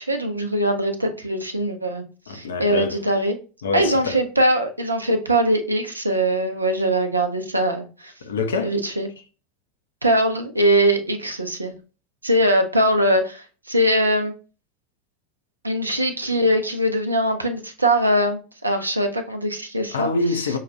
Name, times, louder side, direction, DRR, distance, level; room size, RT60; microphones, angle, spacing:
voice 1, 0.0-3.4 3.7-8.1 8.6-9.1 10.0-11.7 12.2-14.3 15.6-20.1, right 1 dB, 85° right, 0.5 m, -21 dB
voice 2, 2.3-3.0 3.6-4.2 8.2-8.8 19.9-20.6, left 3 dB, 70° left, 0.5 m, -25 dB
5.4 x 2.2 x 2.3 m
figure-of-eight pair, 80°, 0 cm